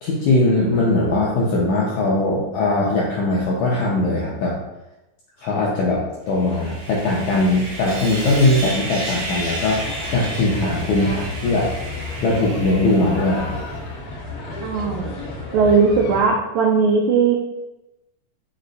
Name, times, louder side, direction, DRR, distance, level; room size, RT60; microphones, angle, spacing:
voice 1, 0.0-4.5 5.4-9.8 10.1-11.7 12.2-13.6, left 2 dB, 80° left, -4 dB, 1.7 m, -20 dB
Sawing, 6.3-13.8, right 1 dB, 70° right, 1.5 m, -32 dB
sound 1, 9.7-16.2, left 3 dB, 60° left, 1.4 m, -32 dB
voice 2, 14.6-15.1 15.5-17.4, right 5 dB, 90° right, -1 dB, 1.7 m, -18 dB
5.5 x 2.1 x 3.9 m, 0.95 s
omnidirectional pair, 4.0 m